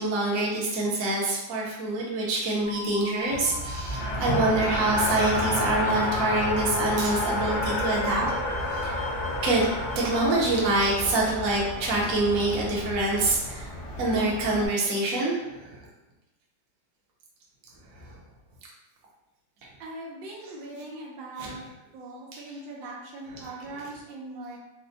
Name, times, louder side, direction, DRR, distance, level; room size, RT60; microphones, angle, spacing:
voice 1, 0.0-8.3 8.7-9.1 9.4-9.7 9.9-13.7 14.0-15.8 18.0-18.1 20.4-20.5 21.4-21.7 23.3-23.9, right 2 dB, 60° right, -4 dB, 1.0 m, -26 dB
sound 1, 2.6-10.3, left 2 dB, 30° left, 0.5 m, -41 dB
Race car auto racing, 3.3-14.7, left 2 dB, 75° left, 0.6 m, -30 dB
voice 2, 19.8-21.6 21.9-24.6, right 2 dB, 80° right, -2 dB, 1.4 m, -40 dB
4.2 x 2.1 x 2.6 m, 0.97 s
omnidirectional pair, 2.0 m